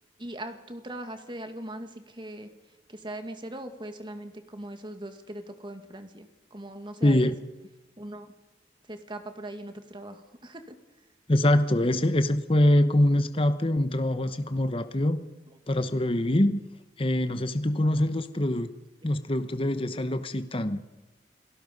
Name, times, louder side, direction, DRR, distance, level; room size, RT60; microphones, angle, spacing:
voice 1, 0.2-2.5 2.9-7.3 8.0-8.3 8.9-10.8, right 1 dB, 25° right, 7 dB, 2.1 m, -40 dB
voice 2, 7.0-7.3 11.3-15.2 15.7-16.6 17.0-18.7 19.0-20.8, left 1 dB, 30° left, 10 dB, 1.0 m, -24 dB
29.0 x 17.5 x 5.4 m, 1.1 s
head